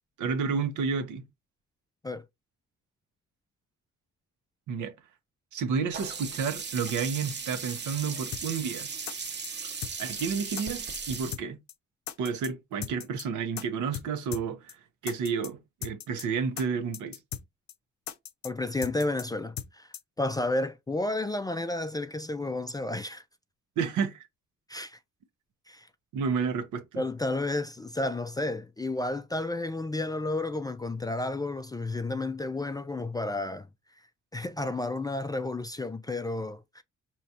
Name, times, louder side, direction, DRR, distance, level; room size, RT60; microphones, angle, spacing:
voice 1, 0.2-1.3 4.7-4.9 5.5-8.9 10.0-11.6 12.2-14.8 15.0-17.2 23.8-24.3 26.1-27.0, right 5 dB, 80° right, 1.0 m, -31 dB
Sink (filling or washing), 5.9-11.3, right 5 dB, 35° right, 0.8 m, -37 dB
sound 1, 8.3-8.4 8.7-8.8 9.1-9.5 9.8-10.2 10.6-10.7 10.9-11.4 11.7-11.8 12.1-12.5 12.8-13.2 13.6-13.7 13.9-14.1 14.3-14.4 14.7-14.8 15.1-15.5 15.8-16.2 16.6-16.7 16.9-17.4 17.7-17.8 18.1-18.5 18.8-19.2 19.6-19.7 19.9-20.0, left 10 dB, 65° left, 0.6 m, -38 dB
voice 2, 18.4-19.9 20.2-23.2 24.7-25.0 25.7-25.9 27.0-33.7 34.3-36.8, left 2 dB, 15° left, 0.3 m, -31 dB
4.7 x 3.1 x 2.7 m
cardioid pair, 90°, 30 cm